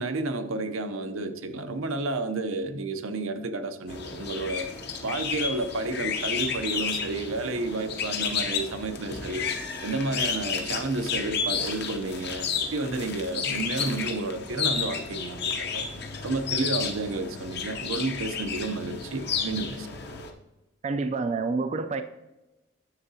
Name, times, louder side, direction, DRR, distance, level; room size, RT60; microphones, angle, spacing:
voice 1, 0.0-4.7 5.0-9.5 9.8-15.8 16.2-19.9, right 2 dB, 80° right, 9 dB, 0.6 m, -31 dB
sound 1, 3.9-20.3, left 6 dB, 55° left, 0.8 m, -32 dB
voice 2, 20.8-22.0, right 3 dB, 35° right, 8 dB, 0.3 m, -28 dB
9.8 x 6.9 x 2.7 m, 1.0 s
head